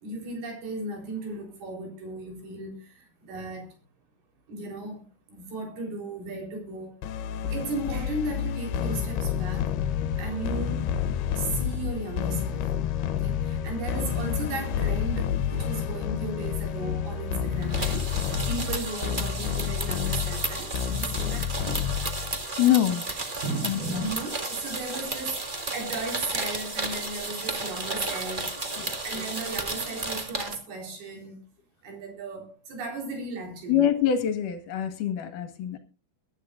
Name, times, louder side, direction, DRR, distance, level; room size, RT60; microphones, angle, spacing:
voice 1, 0.0-3.7 4.5-7.0 7.5-9.7 10.2-10.9 11.4-12.7 13.1-18.1 18.5-21.8 23.4-28.6 28.9-31.4 31.8-33.9, right 2 dB, 80° right, 6.0 m, -36 dB
sound 1, 7.0-22.4, left 8 dB, 85° left, 3.0 m, -29 dB
sound 2, 17.6-30.5, right 2 dB, 50° right, 0.5 m, -33 dB
voice 2, 22.6-23.1 23.6-24.1 28.8-29.0 33.7-35.8, left 10 dB, 60° left, 3.0 m, -25 dB
22.5 x 11.5 x 2.5 m
omnidirectional pair, 4.4 m